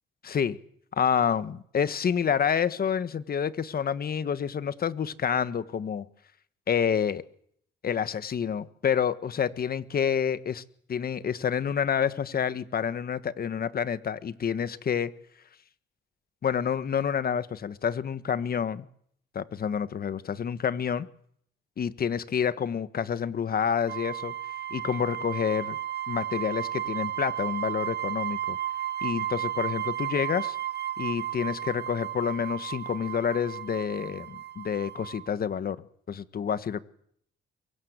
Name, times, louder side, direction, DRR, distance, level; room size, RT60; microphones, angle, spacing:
voice 1, 0.2-0.6 0.9-6.0 6.7-7.2 7.8-10.6 10.9-15.1 16.4-18.9 19.3-21.1 21.8-24.3 24.7-25.8 26.1-28.6 29.0-30.6 31.0-35.8 36.1-36.8, left 7 dB, 50° left, 14 dB, 1.5 m, -28 dB
sound 1, 23.9-35.3, right 12 dB, 55° right, 1.7 m, -34 dB
23.5 x 23.5 x 8.1 m, 0.67 s
cardioid pair, 90°, 20 cm